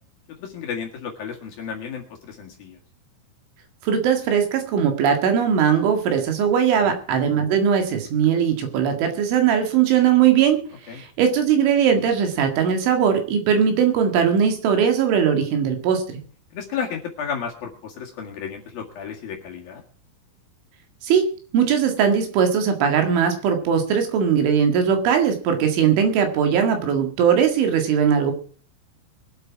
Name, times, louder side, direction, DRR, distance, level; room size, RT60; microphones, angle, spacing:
voice 1, 0.4-2.8 6.8-7.0 10.9-11.0 16.5-19.8, left 7 dB, 55° left, 0 dB, 3.2 m, -33 dB
voice 2, 3.8-10.6 10.9-16.0 21.0-21.3 21.5-28.3, right 7 dB, 70° right, 5 dB, 4.2 m, -19 dB
23.0 x 8.1 x 4.7 m, 0.43 s
omnidirectional pair, 5.9 m